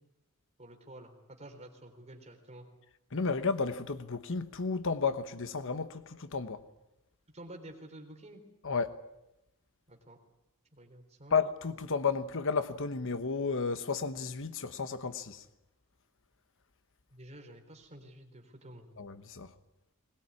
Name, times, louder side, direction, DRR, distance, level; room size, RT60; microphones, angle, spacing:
voice 1, 0.6-2.7 7.3-8.4 9.9-10.2 10.7-11.4 17.1-18.9, right 1 dB, 30° right, 4.0 m, -50 dB
voice 2, 3.1-6.6 8.6-9.0 11.3-15.4 19.0-19.5, left 5 dB, 60° left, 1.1 m, -32 dB
21.0 x 20.5 x 9.7 m
head